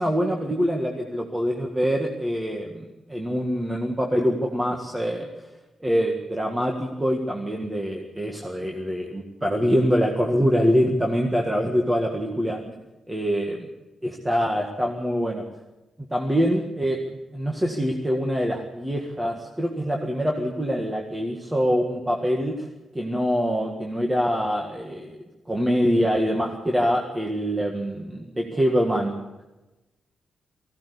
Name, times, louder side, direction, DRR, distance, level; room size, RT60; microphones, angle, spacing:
voice 1, 0.0-2.8 3.1-5.3 5.8-12.6 13.1-13.6 14.0-15.4 16.1-22.7 22.9-29.1, equal, 10° right, 1 dB, 1.8 m, -24 dB
19.5 x 16.0 x 8.4 m, 1.0 s
wide cardioid pair, 155°, 0 cm